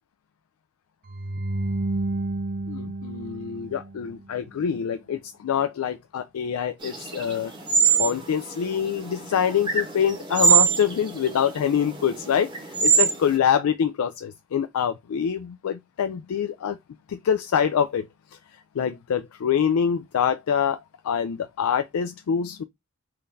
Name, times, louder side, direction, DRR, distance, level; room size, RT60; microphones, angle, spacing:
sound 1, 1.1-4.3, right 2 dB, 40° right, 0.5 m, -30 dB
voice 1, 2.7-7.5 8.0-16.8 17.1-18.1 18.8-22.6, left 8 dB, 80° left, 0.4 m, -25 dB
sound 2, 6.8-13.3, right 6 dB, 20° right, 1.0 m, -24 dB
3.8 x 2.6 x 3.4 m
head